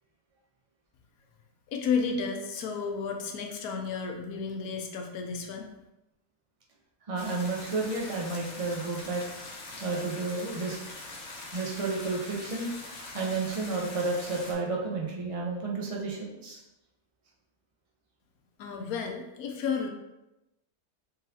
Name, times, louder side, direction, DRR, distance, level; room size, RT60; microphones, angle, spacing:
voice 1, 1.7-5.7 18.6-19.9, left 5 dB, 80° left, 3 dB, 1.1 m, -32 dB
voice 2, 7.1-9.2 9.8-10.8 11.5-12.7 13.1-16.6, right 3 dB, 40° right, -2 dB, 0.5 m, -31 dB
sound 1, 7.2-14.5, left 2 dB, 55° left, 1.1 m, -43 dB
3.9 x 3.7 x 2.8 m, 0.94 s
omnidirectional pair, 1.6 m